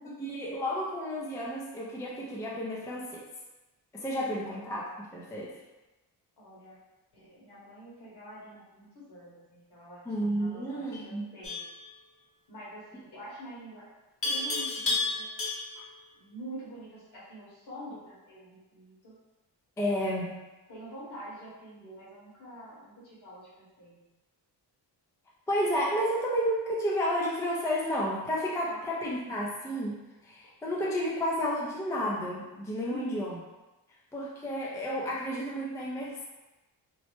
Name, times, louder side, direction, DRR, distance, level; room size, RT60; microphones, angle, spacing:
voice 1, 0.2-3.2 3.9-5.6 10.1-11.3 15.8-15.9 19.8-20.4 25.5-33.4 34.1-36.3, equal, 10° left, -4 dB, 0.3 m, -31 dB
voice 2, 6.4-6.8 7.1-11.6 12.5-13.9 14.2-15.3 16.2-19.1 19.9-20.1 20.7-24.0 28.6-29.1 32.8-33.2, right 1 dB, 65° left, -7 dB, 1.4 m, -46 dB
Livestock farm animals working animals, 11.4-11.8 14.2-15.9, left 3 dB, 30° left, 0.7 m, -31 dB
3.0 x 2.0 x 3.1 m, 1.1 s
wide cardioid pair, 130°, 42 cm